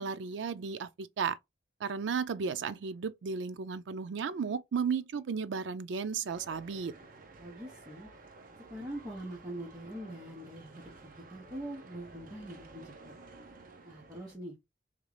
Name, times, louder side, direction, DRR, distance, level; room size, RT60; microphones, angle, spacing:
voice 1, 0.0-1.4 1.8-6.9, right 6 dB, 90° right, 0.4 m, -34 dB
sound 1, 6.3-14.4, right 3 dB, 50° right, 0.7 m, -53 dB
voice 2, 7.4-8.1 8.7-13.1 13.8-14.5, right 1 dB, 20° right, 1.1 m, -43 dB
3.7 x 3.1 x 3.2 m
head